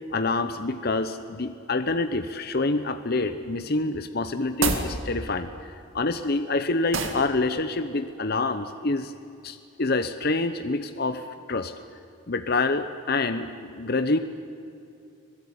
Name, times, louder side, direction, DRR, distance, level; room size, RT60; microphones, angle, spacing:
voice 1, 0.1-5.5 5.9-9.1 9.4-11.7 12.3-14.2, left 3 dB, 45° left, 9 dB, 0.9 m, -27 dB
sound 1, 4.5-4.9 6.9-7.3, right 4 dB, 65° right, 2.4 m, -26 dB
25.5 x 17.5 x 9.5 m, 2.5 s
head